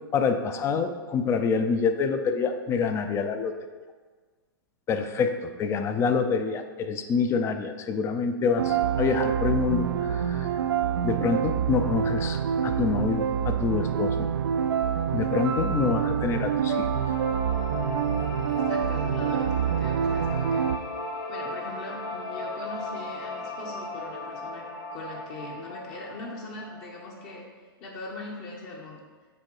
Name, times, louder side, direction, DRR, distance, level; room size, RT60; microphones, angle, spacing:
voice 1, 0.1-3.5 4.9-10.5 11.0-14.3 15.1-16.9, left 5 dB, 20° left, 8 dB, 0.5 m, -26 dB
sound 1, 8.6-20.8, right 8 dB, 80° right, 0.5 m, -26 dB
sound 2, 16.3-27.4, left 2 dB, 70° left, 1.3 m, -37 dB
voice 2, 18.5-20.7 21.3-27.5 27.8-29.0, left 2 dB, 40° left, -1 dB, 1.2 m, -41 dB
6.8 x 3.6 x 4.9 m, 1.4 s
hypercardioid pair, 130°, 12 cm